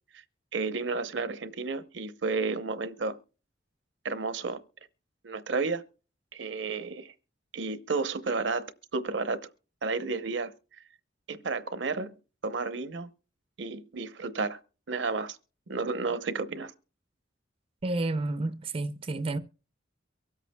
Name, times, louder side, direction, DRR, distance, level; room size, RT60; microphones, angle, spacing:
voice 1, 0.5-3.2 4.0-4.6 5.2-5.8 6.3-7.1 7.5-9.5 9.8-10.5 11.3-12.1 12.4-13.1 13.6-14.6 14.9-15.4 15.7-16.7, right 4 dB, 75° right, 0.7 m, -32 dB
voice 2, 17.8-19.4, right 2 dB, 30° right, 0.5 m, -30 dB
23.5 x 8.1 x 2.2 m
head